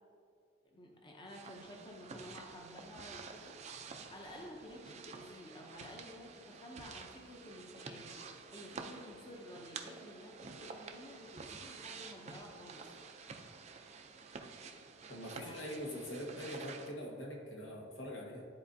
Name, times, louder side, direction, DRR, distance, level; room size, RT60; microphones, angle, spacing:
voice 1, 0.7-3.6 4.1-8.1 8.5-13.0 15.4-15.7, left 1 dB, 25° left, 0 dB, 0.7 m, -52 dB
sound 1, 1.3-16.9, right 4 dB, 35° right, 0.5 m, -50 dB
voice 2, 15.1-18.5, equal, 90° left, -2 dB, 1.5 m, -43 dB
12.0 x 4.1 x 2.7 m, 2.5 s
head